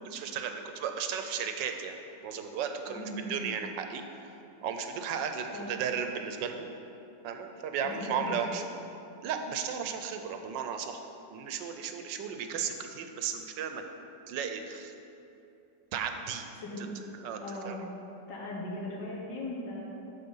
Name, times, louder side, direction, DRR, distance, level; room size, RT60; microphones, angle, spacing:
voice 1, 0.0-2.0 2.2-4.0 4.6-6.7 7.2-8.6 9.2-11.0 11.3-13.8 14.3-14.9 15.9-16.5 17.2-17.8, right 7 dB, 85° right, 6 dB, 1.4 m, -35 dB
voice 2, 2.9-3.5 5.5-5.7 8.1-8.4 12.0-12.1 16.6-17.0 17.4-17.8 18.3-19.8, left 1 dB, 80° left, -3 dB, 1.9 m, -38 dB
12.0 x 4.2 x 5.5 m, 2.8 s
omnidirectional pair, 1.9 m